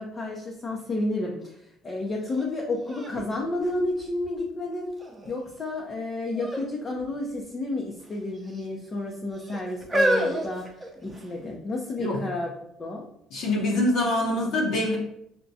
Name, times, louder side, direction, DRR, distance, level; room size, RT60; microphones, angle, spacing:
voice 1, 0.0-4.9 5.3-12.5 12.8-13.0, left 2 dB, 30° left, -1 dB, 0.6 m, -31 dB
sound 1, 2.3-2.4 2.9-4.4 5.0-5.5 6.3-6.7 7.0-7.1 8.0-8.7 9.4-11.4 12.2-12.3, right 1 dB, 10° right, 0.8 m, -29 dB
voice 2, 13.3-15.0, left 1 dB, 60° left, -1 dB, 0.8 m, -24 dB
5.8 x 2.2 x 2.7 m, 0.75 s
cardioid pair, 115°, 0 cm